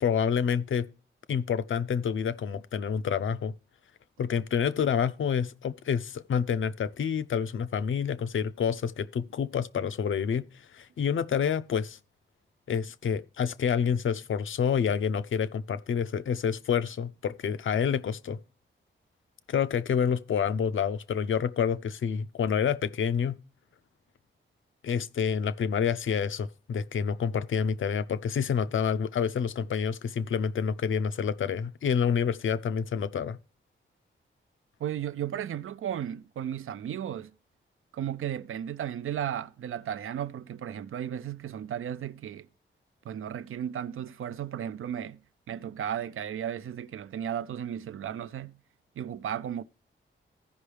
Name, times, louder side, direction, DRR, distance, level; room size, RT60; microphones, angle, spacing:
voice 1, 0.0-0.9 1.3-3.5 4.2-10.4 10.7-12.0 12.7-18.4 19.5-23.3 24.8-33.4, left 7 dB, 70° left, 0.6 m, -28 dB
voice 2, 34.8-37.3 37.9-42.5 43.1-45.2 45.5-48.6 49.0-49.6, right 10 dB, 80° right, 0.5 m, -34 dB
15.0 x 5.4 x 3.3 m
wide cardioid pair, 125°, 21 cm